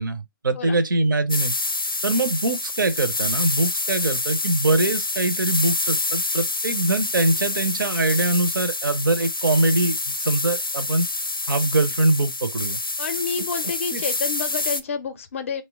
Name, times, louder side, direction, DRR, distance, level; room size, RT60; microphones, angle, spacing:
voice 1, 0.0-1.6 2.0-11.1 11.5-12.8 13.9-14.0, right 2 dB, 65° right, 0.5 m, -23 dB
sound 1, 1.3-14.8, left 2 dB, 90° left, 0.5 m, -27 dB
voice 2, 13.0-15.6, left 5 dB, 35° left, 0.5 m, -29 dB
2.8 x 2.1 x 3.4 m
figure-of-eight pair, 140°, 12 cm